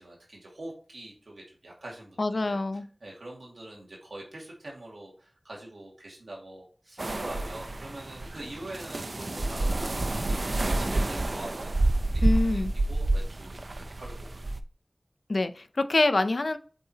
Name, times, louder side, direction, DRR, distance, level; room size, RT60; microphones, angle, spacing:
voice 1, 0.0-2.6 3.0-11.7 12.0-12.6 12.9-14.1, right 1 dB, 85° right, -3 dB, 2.2 m, -44 dB
voice 2, 2.2-2.9 12.2-12.7 15.3-16.6, left 2 dB, 70° left, 10 dB, 0.6 m, -25 dB
sound 1, 7.0-14.6, right 2 dB, 65° right, 0.6 m, -28 dB
7.7 x 4.7 x 2.8 m, 0.40 s
wide cardioid pair, 45°, 0 cm